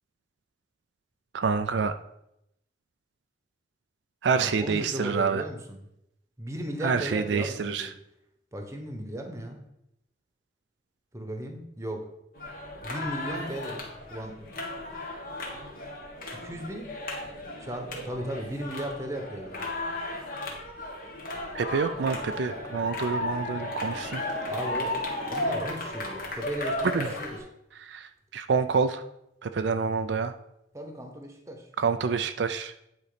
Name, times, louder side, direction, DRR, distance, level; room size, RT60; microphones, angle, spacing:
voice 1, 1.3-1.9 4.2-5.4 6.8-7.9 21.5-24.2 26.9-27.1 27.8-29.0 29.4-30.3 31.8-32.7, right 5 dB, 75° right, 9 dB, 0.4 m, -27 dB
voice 2, 4.4-5.8 6.4-7.9 8.5-9.7 11.1-12.1 12.8-14.5 16.4-16.9 17.6-19.7 24.5-25.0 25.3-27.4 30.7-31.7, right 1 dB, 15° right, 4 dB, 1.0 m, -36 dB
sound 1, 12.3-27.4, left 2 dB, 50° left, 1.5 m, -35 dB
sound 2, 21.9-27.3, right 2 dB, 40° right, 0.9 m, -45 dB
9.2 x 4.1 x 5.1 m, 0.80 s
head